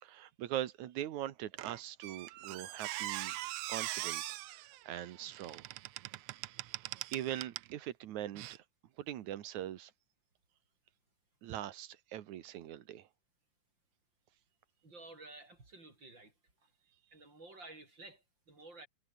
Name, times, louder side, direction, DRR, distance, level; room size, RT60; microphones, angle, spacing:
voice 1, 0.0-3.3 3.7-5.6 6.7-6.8 7.1-8.6 9.0-9.9 11.4-13.1, right 12 dB, 70° right, 2.5 m, -42 dB
Squeak, 1.6-7.7 8.3-8.6, right 16 dB, 90° right, 1.4 m, -42 dB
voice 2, 14.8-16.3 17.1-18.9, right 2 dB, 35° right, 6.2 m, -53 dB
omnidirectional pair, 3.6 m